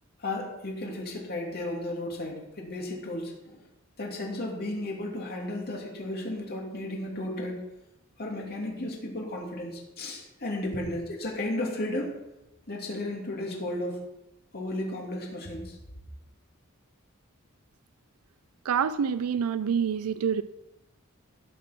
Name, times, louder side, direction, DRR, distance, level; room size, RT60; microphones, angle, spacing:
voice 1, 0.2-3.6 4.0-7.6 8.2-12.1 12.7-14.0 14.5-15.8, left 1 dB, 45° left, -1 dB, 2.7 m, -34 dB
voice 2, 18.6-20.4, right 7 dB, 90° right, 14 dB, 0.4 m, -27 dB
13.5 x 6.1 x 5.9 m, 0.96 s
head